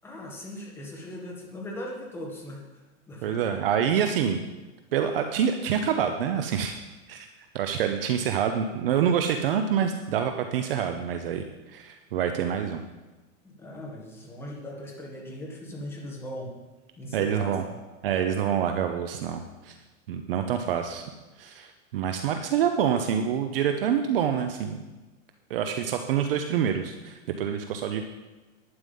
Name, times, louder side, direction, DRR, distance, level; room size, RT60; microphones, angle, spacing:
voice 1, 0.0-2.8 3.1-3.6 13.4-16.5 17.0-17.6, left 1 dB, 5° left, -2 dB, 1.7 m, -39 dB
voice 2, 3.2-4.4 4.9-6.7 7.1-12.8 17.1-17.6 18.0-19.8 20.1-21.0 21.4-24.8 25.5-28.0, right 8 dB, 45° right, 6 dB, 0.8 m, -27 dB
11.5 x 9.8 x 5.4 m, 1.2 s
supercardioid pair, 170°, 40 cm